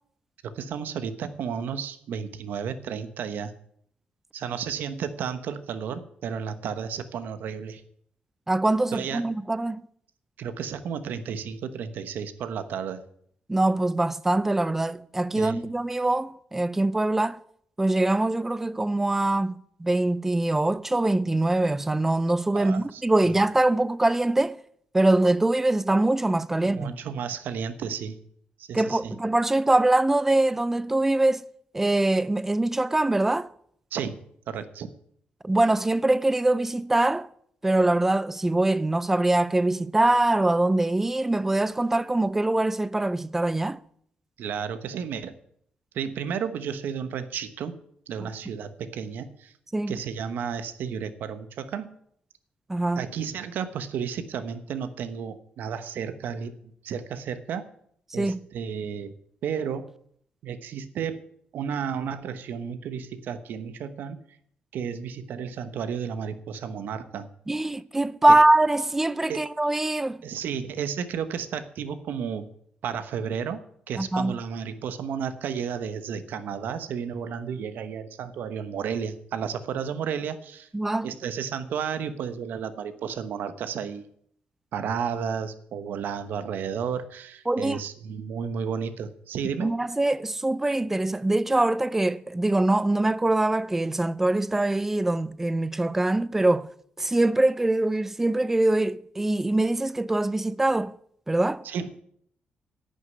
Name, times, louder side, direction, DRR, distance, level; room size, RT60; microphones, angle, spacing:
voice 1, 0.4-3.5 4.3-7.8 8.9-9.3 10.4-13.0 15.4-15.6 22.5-23.3 26.6-28.2 28.6-29.1 33.9-34.2 34.5-34.9 44.4-45.3 45.9-47.7 48.1-49.5 49.9-51.9 52.9-57.7 58.1-59.1 59.4-59.9 60.4-61.2 61.5-64.2 64.7-67.3 68.3-68.4 69.3-69.4 70.2-72.5 72.8-80.7 81.0-84.1 84.7-89.7 101.6-101.9, right 7 dB, 90° right, 1.1 m, -32 dB
voice 2, 8.5-9.8 13.5-17.4 17.8-24.6 24.9-26.9 28.7-31.4 31.7-33.5 35.4-37.3 37.6-43.8 49.7-49.9 52.7-53.1 58.1-58.4 67.5-70.2 74.0-74.4 80.7-81.1 87.5-87.8 89.6-96.7 97.0-101.0 101.3-101.7, right 2 dB, 10° right, 0.4 m, -23 dB
11.0 x 6.5 x 9.3 m
wide cardioid pair, 165°, 3 cm